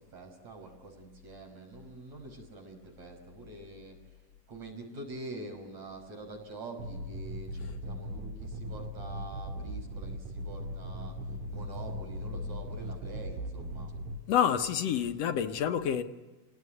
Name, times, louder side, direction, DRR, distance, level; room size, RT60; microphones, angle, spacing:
voice 1, 0.0-4.2 4.5-11.1 11.5-13.9, right 2 dB, 65° right, 6.7 m, -45 dB
sound 1, 6.8-14.2, equal, 90° right, 4.0 m, -39 dB
voice 2, 14.3-16.0, left 8 dB, 65° left, 1.9 m, -28 dB
29.0 x 19.0 x 9.7 m
omnidirectional pair, 3.4 m